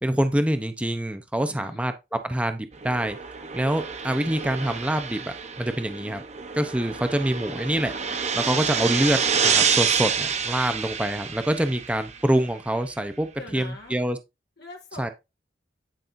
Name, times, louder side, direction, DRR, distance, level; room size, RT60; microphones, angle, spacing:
voice 1, 0.0-3.2 3.5-6.2 6.5-7.9 8.3-14.2 15.0-15.1, right 1 dB, 5° right, 0.7 m, -26 dB
voice 2, 1.5-1.9 13.4-14.0 14.6-15.1, left 2 dB, 65° left, 1.6 m, -42 dB
sound 1, 2.7-12.3, right 6 dB, 40° right, 0.9 m, -28 dB
10.0 x 5.4 x 2.6 m
head